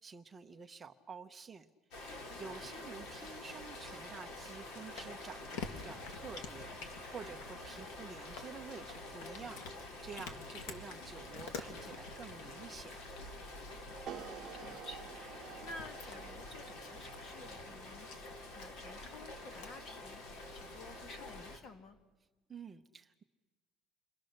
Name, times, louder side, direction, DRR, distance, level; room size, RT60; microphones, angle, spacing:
voice 1, 0.0-13.1 22.5-23.2, right 5 dB, 20° right, 5 dB, 0.8 m, -50 dB
Rain, 1.9-21.6, left 2 dB, 60° left, 4.2 m, -48 dB
Cat, 4.3-21.4, left 5 dB, 80° left, 2.3 m, -51 dB
voice 2, 14.1-22.0, left 2 dB, 35° left, 7 dB, 1.9 m, -53 dB
sound 1, 14.1-20.2, right 10 dB, 35° right, 1.5 m, -52 dB
29.5 x 24.0 x 6.6 m, 1.3 s
cardioid pair, 165°, 0 cm